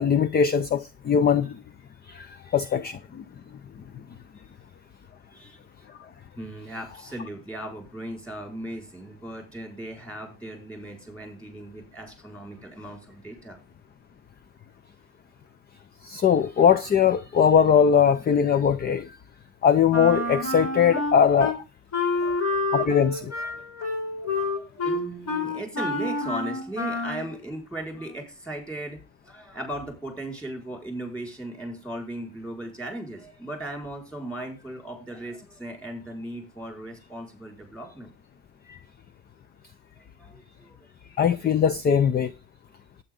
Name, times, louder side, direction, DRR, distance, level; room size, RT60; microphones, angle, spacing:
voice 1, 0.0-1.6 2.1-3.2 16.0-19.1 19.6-21.6 22.7-23.3 38.7-38.8 41.2-42.3, left 7 dB, 25° left, 0.6 m, -21 dB
voice 2, 6.4-13.6 22.1-22.6 23.1-23.7 24.2-29.0 29.2-38.1 40.2-40.8, right 1 dB, 5° left, 5.2 m, -37 dB
Wind instrument woodwind instrument, 19.9-21.6 21.9-27.3, left 2 dB, 40° left, 4.4 m, -28 dB
12.0 x 9.1 x 3.8 m
cardioid pair, 125°, 41 cm